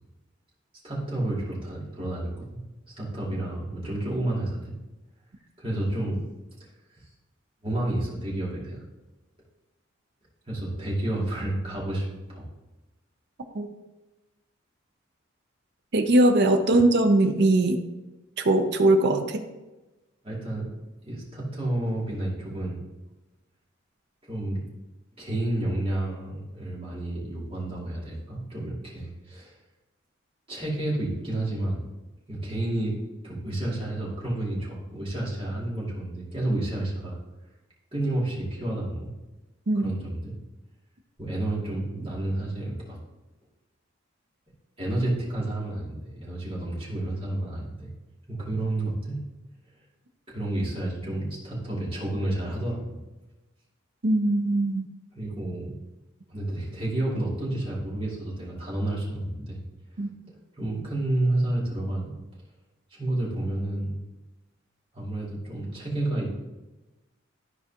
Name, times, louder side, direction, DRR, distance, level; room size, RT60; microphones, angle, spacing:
voice 1, 0.8-2.4 3.0-4.7 5.6-6.2 7.6-8.8 10.5-12.4 20.2-20.7 21.0-22.8 24.3-24.6 25.2-29.5 30.5-31.8 32.3-32.9 33.2-37.2 37.9-39.1 39.7-40.3 41.2-43.0 44.8-47.9 48.3-49.2 50.3-53.0 55.1-55.7 56.3-59.6 60.6-62.1 62.9-63.9 64.9-66.3, right 1 dB, 30° right, -6 dB, 2.6 m, -30 dB
voice 2, 15.9-17.8 18.4-19.4 39.7-39.9 54.0-54.9 60.0-60.1, right 1 dB, 55° right, 7 dB, 0.6 m, -21 dB
14.0 x 4.7 x 2.9 m, 1.1 s
head